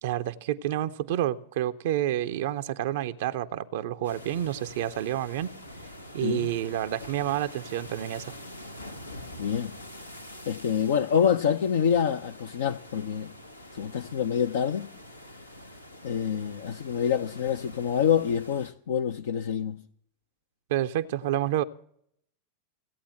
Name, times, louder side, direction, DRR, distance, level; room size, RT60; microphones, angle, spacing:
voice 1, 0.0-5.5 6.1-8.3 20.7-21.6, right 12 dB, 55° right, 0.5 m, -29 dB
sound 1, 4.0-18.7, left 1 dB, 85° left, 1.0 m, -45 dB
voice 2, 9.4-9.7 10.5-13.3 13.7-14.9 16.0-19.8, left 8 dB, 60° left, 0.5 m, -26 dB
16.5 x 8.6 x 7.6 m
figure-of-eight pair, 90°, 0 cm